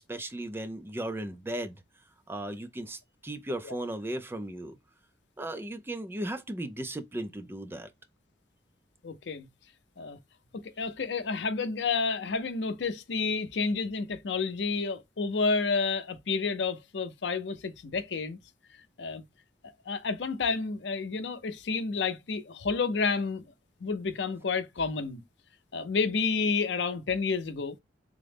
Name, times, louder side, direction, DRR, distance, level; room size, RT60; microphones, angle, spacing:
voice 1, 0.0-1.8 2.3-4.8 5.4-7.9, right 1 dB, 15° right, 0.3 m, -36 dB
voice 2, 9.0-9.5 10.0-10.2 10.5-18.4 19.0-19.2 19.9-23.4 23.8-25.2 25.7-27.8, left 4 dB, 80° left, 0.6 m, -30 dB
3.6 x 2.0 x 3.3 m
head